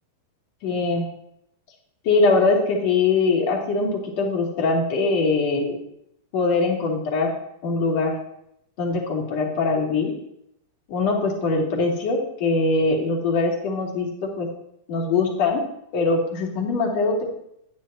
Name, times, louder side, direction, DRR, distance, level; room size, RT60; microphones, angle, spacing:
voice 1, 0.6-1.0 2.0-5.8 6.3-7.3 7.6-8.1 8.8-10.1 10.9-14.5 14.9-15.6 15.9-17.2, left 3 dB, 55° left, -1 dB, 2.8 m, -22 dB
9.8 x 9.5 x 3.0 m, 0.77 s
hypercardioid pair, 120°, 0 cm